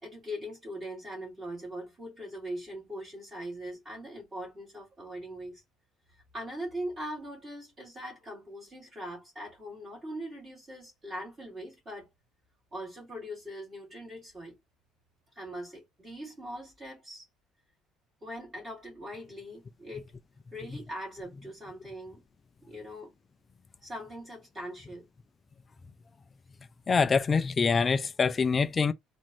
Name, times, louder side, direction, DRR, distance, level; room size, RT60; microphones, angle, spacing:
voice 1, 0.0-5.6 6.3-12.1 12.7-14.6 15.3-17.3 18.2-20.1 20.5-22.2 22.6-23.1 23.8-25.1, equal, 20° right, 2.8 m, -41 dB
voice 2, 26.9-28.9, left 5 dB, 20° left, 0.3 m, -25 dB
4.3 x 2.4 x 3.0 m
cardioid pair, 165°, 0 cm